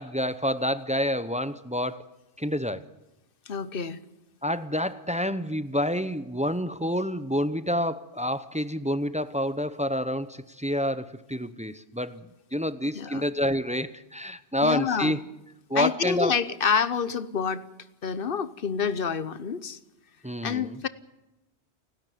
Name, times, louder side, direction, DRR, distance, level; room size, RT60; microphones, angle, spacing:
voice 1, 0.0-2.1 2.4-2.9 4.4-15.2 15.7-16.4 20.2-20.8, equal, 10° right, 13 dB, 0.6 m, -28 dB
voice 2, 3.5-4.0 12.9-13.2 14.6-15.2 15.7-17.7 18.0-19.8 20.4-20.9, left 6 dB, 55° left, 15 dB, 1.1 m, -27 dB
29.0 x 12.0 x 9.3 m, 0.97 s
omnidirectional pair, 1.1 m